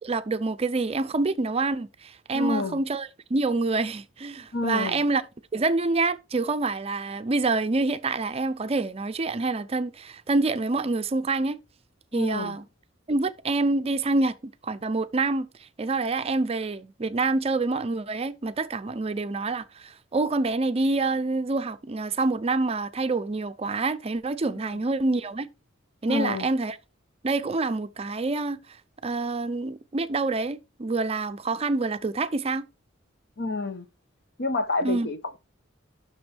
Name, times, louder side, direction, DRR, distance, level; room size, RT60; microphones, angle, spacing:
voice 1, 0.0-5.2 5.5-11.6 12.1-12.6 13.1-14.3 14.6-15.5 15.8-25.5 26.0-26.8 27.2-28.6 29.0-32.7 34.8-35.1, right 3 dB, 30° right, 0.5 m, -27 dB
voice 2, 2.3-2.8 4.5-5.0 12.1-12.6 24.6-24.8 26.1-26.5 33.4-33.9 34.4-35.4, left 3 dB, 55° left, 0.9 m, -28 dB
11.0 x 6.1 x 3.4 m
head